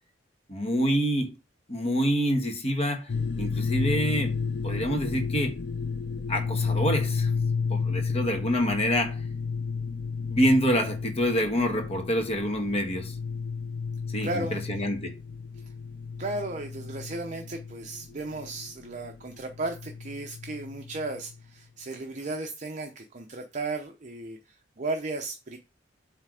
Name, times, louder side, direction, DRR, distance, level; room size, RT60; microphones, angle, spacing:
voice 1, 0.5-1.3 1.7-3.1 3.4-4.3 4.6-5.5 6.3-7.3 7.7-9.1 10.3-13.1 14.1-15.1, equal, 35° left, 1.5 m, -26 dB
sound 1, 3.1-21.4, left 5 dB, 65° left, 0.5 m, -32 dB
voice 2, 14.2-14.8 15.5-15.7 16.2-25.6, right 2 dB, 40° right, 0.7 m, -35 dB
7.9 x 3.3 x 4.8 m
head